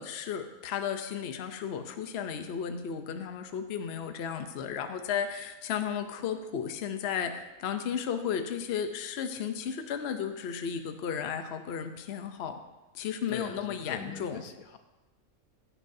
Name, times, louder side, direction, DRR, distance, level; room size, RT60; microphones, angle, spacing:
voice 1, 0.0-12.6 12.9-14.4, left 7 dB, 55° left, 7 dB, 0.9 m, -34 dB
voice 2, 13.3-14.8, left 7 dB, 75° left, 7 dB, 1.2 m, -41 dB
15.0 x 11.0 x 2.7 m, 1.1 s
omnidirectional pair, 1.5 m